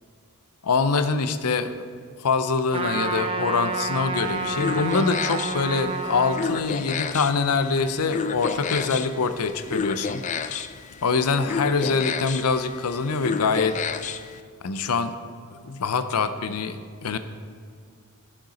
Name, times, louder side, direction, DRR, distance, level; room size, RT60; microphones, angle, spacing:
voice 1, 0.6-1.9 2.2-10.6 11.0-13.8 14.6-15.1 15.6-17.2, left 4 dB, 90° left, 10 dB, 0.6 m, -24 dB
Trumpet, 2.7-6.4, right 2 dB, 25° right, 0.7 m, -29 dB
sound 1, 4.2-14.4, left 5 dB, 35° left, 0.4 m, -32 dB
11.5 x 6.6 x 4.2 m, 2.1 s
head